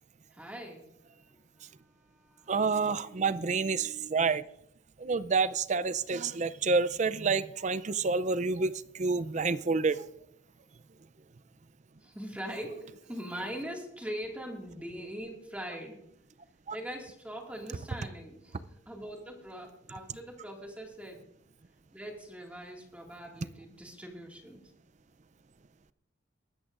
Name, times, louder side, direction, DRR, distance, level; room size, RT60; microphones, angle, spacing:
voice 1, 0.3-0.9 1.3-1.4 1.8-2.6 12.0-16.1 16.7-21.3 21.9-24.6, equal, 5° right, 2.1 m, -42 dB
voice 2, 2.5-4.4 5.0-10.0 16.7-16.8, right 4 dB, 40° right, 0.5 m, -28 dB
21.5 x 13.5 x 2.5 m
head